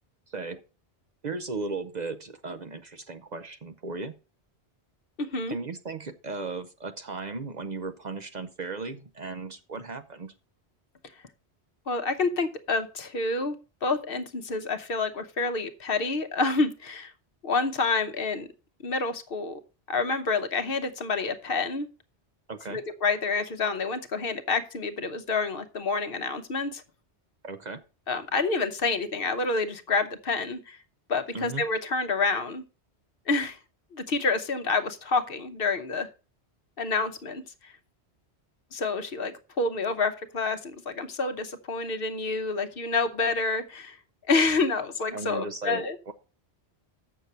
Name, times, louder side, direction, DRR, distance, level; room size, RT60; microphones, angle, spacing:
voice 1, 0.3-0.6 1.2-4.2 5.5-10.3 22.5-22.8 27.4-27.8 31.3-31.6 45.1-46.1, right 3 dB, 45° right, 7 dB, 0.7 m, -36 dB
voice 2, 5.2-5.6 11.9-13.6 13.8-17.1 17.4-18.5 18.8-19.6 19.9-21.9 22.7-26.8 28.1-30.8 31.1-32.6 33.3-33.6 33.9-36.1 36.8-37.7 38.7-44.0 44.3-46.0, left 3 dB, 60° left, 9 dB, 1.0 m, -28 dB
7.9 x 6.6 x 5.4 m, 0.33 s
omnidirectional pair, 1.1 m